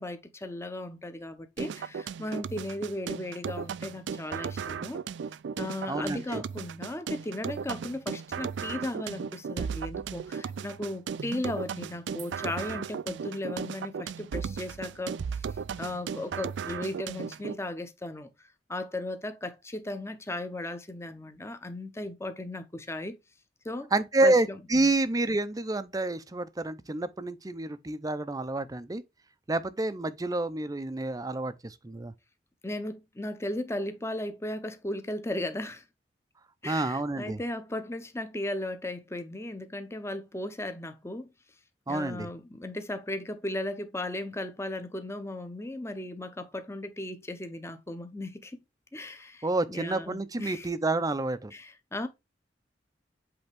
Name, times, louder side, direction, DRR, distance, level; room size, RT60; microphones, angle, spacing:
voice 1, 0.0-5.0 5.6-15.5 15.8-18.3 18.7-23.2 23.6-23.9 24.2-24.9 32.6-35.8 36.6-41.3 41.9-48.6 48.9-50.7 51.5-52.1, left 1 dB, 15° left, 0.8 m, -36 dB
sound 1, 1.6-17.6, right 6 dB, 75° right, 0.4 m, -36 dB
voice 2, 5.9-6.4 23.9-29.0 29.5-32.1 36.6-37.4 41.9-42.3 49.4-51.5, right 2 dB, 20° right, 0.5 m, -28 dB
7.9 x 3.5 x 3.4 m
head